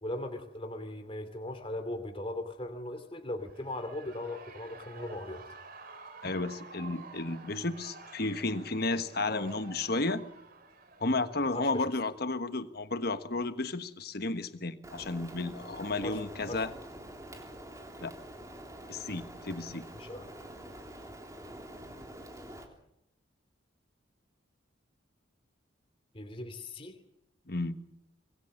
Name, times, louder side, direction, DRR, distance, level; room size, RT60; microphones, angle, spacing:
voice 1, 0.0-5.4 9.3-9.5 11.5-11.8 16.0-16.2 16.5-16.6 19.9-20.3 26.1-27.0, left 1 dB, 25° left, 6 dB, 2.7 m, -38 dB
Shout / Cheering, 3.4-12.3, right 3 dB, 45° right, 3.2 m, -51 dB
voice 2, 6.2-10.2 11.0-16.7 18.0-18.1 18.9-19.9 27.5-27.8, left 2 dB, 50° left, 10 dB, 1.4 m, -33 dB
Rain, 14.8-22.7, right 1 dB, 15° right, 3.3 m, -46 dB
25.5 x 21.5 x 6.6 m, 0.81 s
head